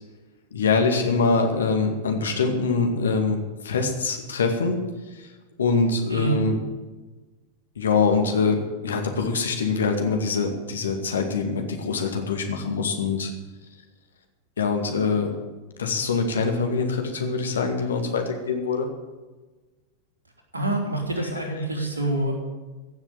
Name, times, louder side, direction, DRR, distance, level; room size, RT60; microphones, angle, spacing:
voice 1, 0.5-4.8 5.2-5.3 5.6-6.6 7.8-13.3 14.6-15.3 15.8-18.9 21.4-21.9, left 4 dB, 70° left, 4 dB, 2.1 m, -24 dB
voice 2, 6.1-6.4 20.5-22.3, right 2 dB, 80° right, 1 dB, 3.2 m, -26 dB
15.5 x 7.2 x 9.0 m, 1.2 s
figure-of-eight pair, 90°, 0 cm